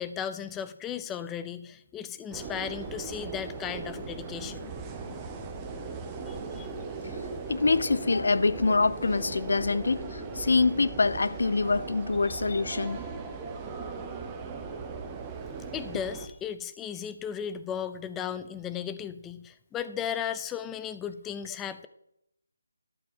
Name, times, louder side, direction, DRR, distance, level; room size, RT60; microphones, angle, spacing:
voice 1, 0.0-4.7 6.3-6.7 15.7-21.9, left 8 dB, 10° left, 0.5 m, -36 dB
sound 1, 2.3-16.3, right 4 dB, 15° right, 0.9 m, -38 dB
sound 2, 3.0-10.0, left 4 dB, 35° left, 1.9 m, -50 dB
voice 2, 7.5-13.0, left 3 dB, 70° left, 0.6 m, -25 dB
12.0 x 4.5 x 7.9 m
figure-of-eight pair, 165°, 0 cm